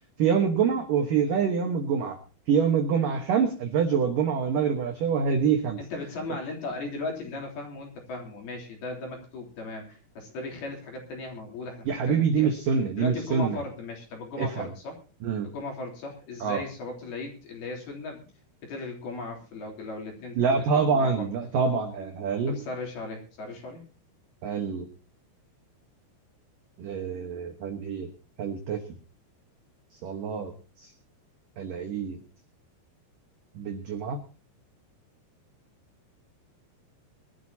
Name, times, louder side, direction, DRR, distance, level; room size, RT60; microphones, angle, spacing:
voice 1, 0.2-2.2 2.5-5.8 11.9-13.6 14.4-14.7 15.2-15.5 16.4-16.6 20.4-22.6 24.4-24.9 26.8-28.1 28.4-28.8 30.0-30.5 30.8-30.9 31.6-32.2 33.6-34.2, right 6 dB, 70° right, 5 dB, 2.1 m, -26 dB
voice 2, 5.8-12.5 13.0-15.0 15.4-18.2 18.6-20.4 20.9-21.3 22.5-23.8, left 2 dB, 55° left, 1 dB, 5.0 m, -37 dB
22.5 x 12.5 x 2.8 m, 0.37 s
omnidirectional pair, 5.7 m